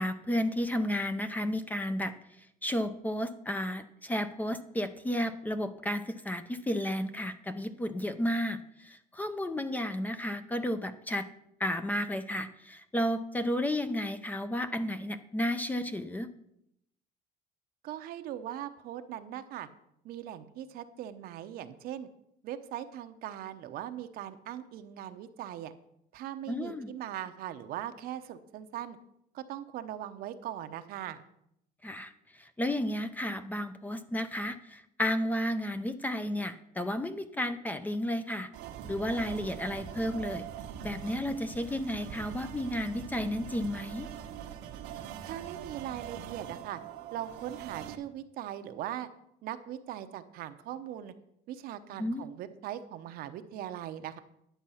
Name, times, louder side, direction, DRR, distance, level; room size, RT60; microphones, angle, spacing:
voice 1, 0.0-2.1 2.6-11.3 11.6-16.3 26.5-26.9 31.8-32.1 32.4-38.5 38.9-40.5 40.8-44.1 52.0-52.3, left 1 dB, 10° left, 10 dB, 0.5 m, -32 dB
voice 2, 17.8-19.7 20.0-22.1 22.4-25.7 26.1-29.0 29.3-31.2 45.2-46.8 47.1-49.1 49.4-51.1 51.5-54.2, right 11 dB, 60° right, 9 dB, 0.8 m, -40 dB
sound 1, 38.5-47.9, right 9 dB, 85° right, 1.1 m, -43 dB
10.5 x 7.2 x 5.6 m, 0.77 s
cardioid pair, 145°, 17 cm